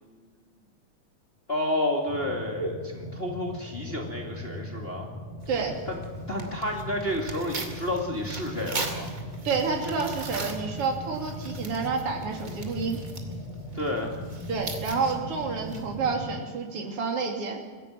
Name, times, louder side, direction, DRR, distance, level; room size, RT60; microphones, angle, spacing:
voice 1, 1.5-5.1 6.3-9.1 13.7-14.1, left 1 dB, 20° left, 1 dB, 2.3 m, -30 dB
sound 1, 2.1-16.5, equal, 90° left, 4.8 m, -39 dB
Tearing, 5.4-16.1, right 2 dB, 30° right, 2.6 m, -40 dB
voice 2, 9.4-13.0 14.5-17.6, right 5 dB, 50° right, 2 dB, 3.6 m, -29 dB
22.0 x 15.5 x 8.9 m, 1.4 s
omnidirectional pair, 3.4 m